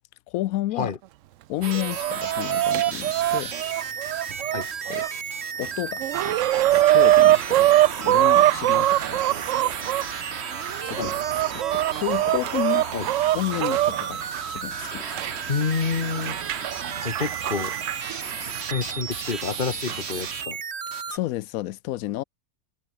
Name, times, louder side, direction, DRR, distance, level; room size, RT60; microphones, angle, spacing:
voice 1, 0.3-0.9 1.5-3.5 4.4-4.5 4.9-5.0 5.6-6.4 6.7-7.7 8.0-9.2 10.8-11.1 11.5-12.9 13.3-14.2 14.5-15.2 21.1-22.2, left 15 dB, 75° left, 1.0 m, -31 dB
sound 1, 1.6-21.2, right 6 dB, 45° right, 1.5 m, -34 dB
Chicken rooster, 1.6-5.1 5.6-5.7 6.0-10.0 10.7-13.9 15.2-15.3 16.3-16.4 17.3-17.7, right 14 dB, 70° right, 0.8 m, -21 dB
sound 2, 6.1-20.5, right 14 dB, 90° right, 1.1 m, -36 dB
voice 2, 15.5-16.7 17.0-17.7 18.4-20.6, left 5 dB, 35° left, 1.3 m, -29 dB
omnidirectional pair, 1.6 m